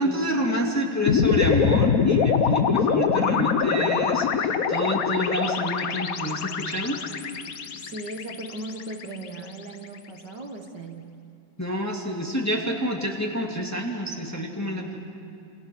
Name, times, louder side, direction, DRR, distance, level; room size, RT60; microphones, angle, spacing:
voice 1, 0.0-7.0 11.6-15.0, equal, 10° left, 0 dB, 2.2 m, -28 dB
sound 1, 1.1-9.4, left 6 dB, 50° left, 1.2 m, -24 dB
voice 2, 7.7-11.2, right 2 dB, 55° right, 3 dB, 2.1 m, -37 dB
29.0 x 28.0 x 6.2 m, 2.6 s
omnidirectional pair, 2.3 m